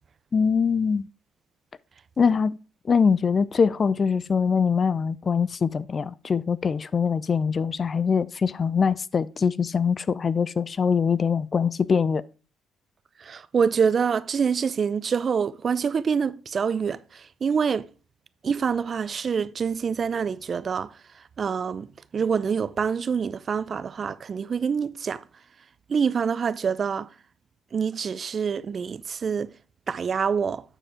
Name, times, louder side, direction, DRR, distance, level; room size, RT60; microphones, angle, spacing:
voice 1, 0.3-1.1 2.2-2.6 2.9-12.2, left 6 dB, 40° left, 0.4 m, -23 dB
voice 2, 13.2-17.9 18.4-20.9 21.4-25.2 25.9-27.1 27.7-29.5 29.9-30.6, right 6 dB, 45° right, 0.5 m, -26 dB
8.8 x 4.8 x 4.8 m
hypercardioid pair, 60°, 0 cm